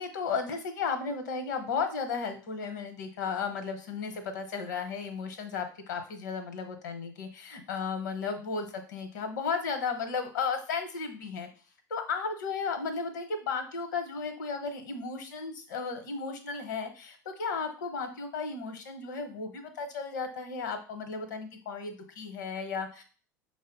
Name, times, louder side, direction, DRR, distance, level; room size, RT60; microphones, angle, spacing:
voice 1, 0.0-11.5 11.9-23.0, left 5 dB, 75° left, 7 dB, 0.8 m, -34 dB
5.3 x 2.0 x 3.9 m, 0.39 s
figure-of-eight pair, 75°, 10 cm